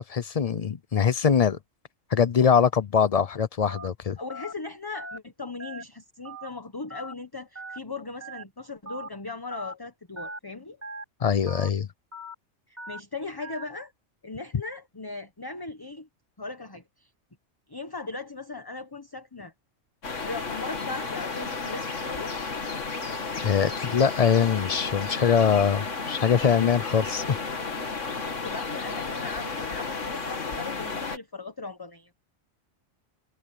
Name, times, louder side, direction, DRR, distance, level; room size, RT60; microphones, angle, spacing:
voice 1, 0.0-1.6 2.1-4.2 11.2-11.9 23.4-27.4, left 7 dB, 45° left, 0.5 m, -23 dB
Telephone, 3.6-3.9 4.3-4.5 4.9-5.2 5.6-5.8 6.2-6.5 6.9-7.1 7.6-7.8 8.2-8.4 8.9-9.1 9.5-9.7 10.2-10.4 10.8-11.0 11.5-11.7 12.1-12.3 12.8-13.0 13.4-13.6, right 1 dB, 10° right, 3.6 m, -39 dB
voice 2, 4.2-10.8 12.7-13.9 14.2-16.1 16.4-17.1 17.7-19.5 20.2-22.3 28.4-32.1, left 3 dB, 20° left, 1.1 m, -38 dB
sound 1, 20.0-31.2, left 4 dB, 70° left, 2.4 m, -33 dB
omnidirectional pair, 1.3 m